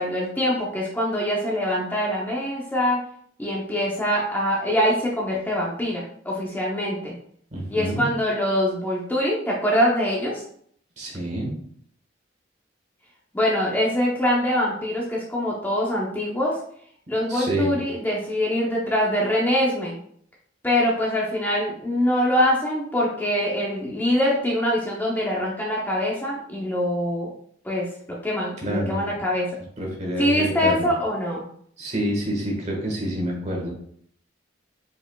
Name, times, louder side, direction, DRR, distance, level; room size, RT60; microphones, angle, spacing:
voice 1, 0.0-3.0 3.4-7.1 7.7-10.4 13.3-16.6 17.1-20.0 20.6-27.3 27.6-27.9 28.2-29.5 30.2-31.5, equal, 10° left, -4 dB, 0.7 m, -24 dB
voice 2, 7.5-8.0 11.0-11.5 17.3-17.8 28.6-29.0 29.8-30.9 31.8-33.7, right 1 dB, 40° right, -1 dB, 1.5 m, -27 dB
5.0 x 4.5 x 2.3 m, 0.63 s
head